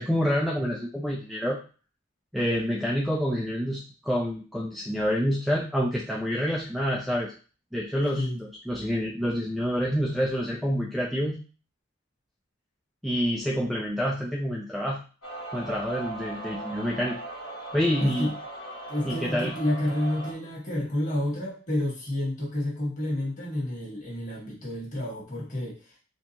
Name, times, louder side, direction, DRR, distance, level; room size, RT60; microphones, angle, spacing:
voice 1, 0.0-1.6 2.3-7.3 7.7-11.4 13.0-15.0 15.5-17.2 17.7-18.3 19.0-19.5, equal, ahead, -4 dB, 0.3 m, -27 dB
sound 1, 15.2-20.3, right 2 dB, 80° left, 1.1 m, -39 dB
voice 2, 18.0-18.3 18.9-25.8, left 1 dB, 35° left, -4 dB, 1.6 m, -29 dB
4.4 x 2.4 x 2.9 m, 0.36 s
head